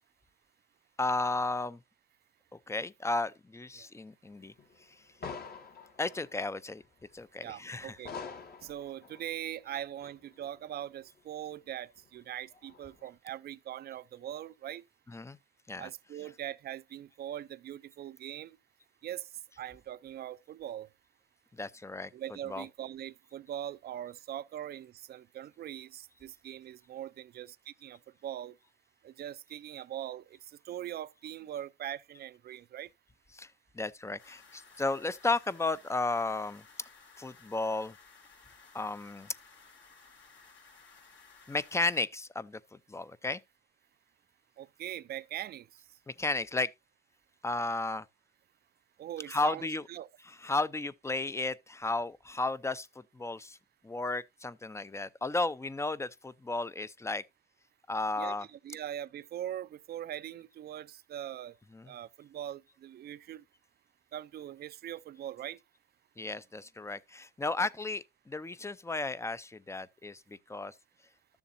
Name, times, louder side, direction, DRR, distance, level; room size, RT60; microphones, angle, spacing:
voice 1, 1.0-1.8 2.7-4.5 6.0-6.8 7.1-8.0 15.1-15.4 15.7-15.9 21.5-22.1 22.5-22.6 33.3-33.5 33.7-36.6 37.2-37.9 38.7-39.3 41.5-42.6 42.9-43.4 46.1-46.7 47.4-48.0 49.3-49.8 50.4-52.9 53.1-53.6 53.8-57.2 57.9-58.5 61.7-61.9 66.2-70.7, left 3 dB, 15° left, 0.5 m, -33 dB
sound 1, 4.3-6.7 7.1-7.2 7.7-7.8 8.1-9.4 10.0-10.9 11.2-11.3 11.6-11.7 12.0-12.1 12.5-13.0, left 5 dB, 50° left, 1.8 m, -46 dB
voice 2, 7.4-8.1 8.6-14.8 15.8-18.6 19.0-19.3 19.6-20.9 22.1-28.6 29.0-32.9 44.6-45.7 49.0-50.1 58.2-61.5 61.9-63.4 64.1-65.6, right 11 dB, 50° right, 0.4 m, -41 dB
sound 2, 34.2-42.0, left 5 dB, 70° left, 3.3 m, -57 dB
13.0 x 7.0 x 2.6 m
cardioid pair, 90°, 20 cm